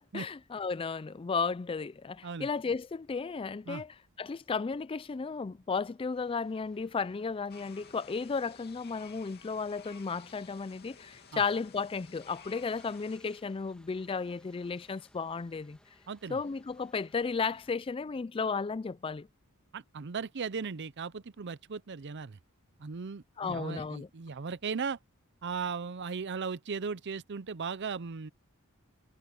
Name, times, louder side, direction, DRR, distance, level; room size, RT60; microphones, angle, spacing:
voice 1, 0.0-15.8 16.3-19.3 23.4-24.1, left 5 dB, 25° left, 0.3 m, -34 dB
sound 1, 6.1-17.8, left 1 dB, 5° left, 1.8 m, -65 dB
sound 2, 7.5-13.2, left 6 dB, 50° left, 2.7 m, -54 dB
voice 2, 16.1-16.4 19.7-22.4 22.8-25.0 25.4-28.3, right 5 dB, 55° right, 0.6 m, -37 dB
head